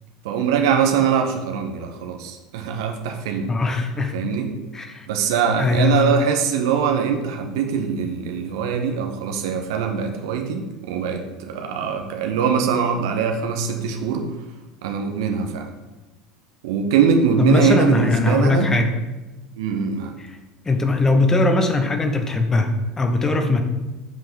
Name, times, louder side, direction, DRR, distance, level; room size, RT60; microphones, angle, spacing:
voice 1, 0.2-3.5 4.1-4.5 5.1-14.3 14.8-15.7 16.6-18.7 19.6-20.1, right 7 dB, 60° right, 4 dB, 1.0 m, -22 dB
voice 2, 3.5-4.2 4.7-5.1 5.6-6.2 17.4-19.0 20.2-20.3 20.6-23.6, left 3 dB, 20° left, 5 dB, 1.0 m, -20 dB
7.5 x 5.8 x 5.2 m, 1.1 s
figure-of-eight pair, 75°, 2 cm